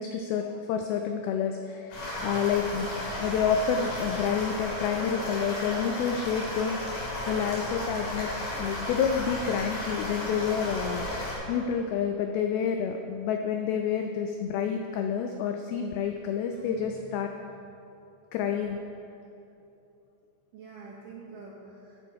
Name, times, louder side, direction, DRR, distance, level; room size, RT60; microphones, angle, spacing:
voice 1, 0.0-6.8 7.2-17.3 18.3-18.8, left 7 dB, 90° left, 4 dB, 2.1 m, -29 dB
sound 1, 1.9-11.3, left 1 dB, 60° left, 4.4 m, -34 dB
voice 2, 16.5-17.1 17.4-17.5 20.5-22.1, right 5 dB, 70° right, -3 dB, 2.2 m, -46 dB
15.0 x 7.0 x 4.7 m, 2.7 s
omnidirectional pair, 5.0 m